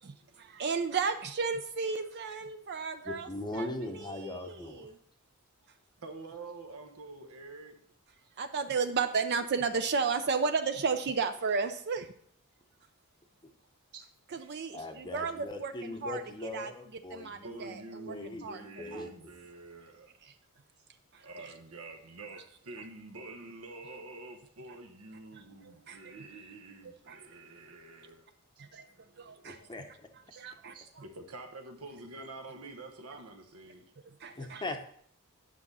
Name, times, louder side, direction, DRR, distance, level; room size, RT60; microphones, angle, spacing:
voice 1, 0.0-4.9 8.4-12.1 14.3-16.7 17.1-18.1 18.4-18.6 18.9-19.1 20.2-20.3 21.1-21.3 25.3-26.1 26.8-27.2 28.6-28.9 29.2-29.6 30.4-30.7 34.1-34.6, right 5 dB, 50° right, 8 dB, 0.5 m, -34 dB
voice 2, 3.0-4.9 14.7-17.8 18.1-19.3 29.4-30.1 34.4-34.9, left 2 dB, 20° left, 4 dB, 0.7 m, -40 dB
voice 3, 6.0-7.8 13.9-14.1 14.4-14.5 17.4-20.1 21.2-28.3 28.6-28.8 29.6-29.7 30.3-30.4 30.7-33.8, right 3 dB, 80° right, 5 dB, 1.1 m, -47 dB
9.6 x 6.6 x 4.1 m, 0.64 s
head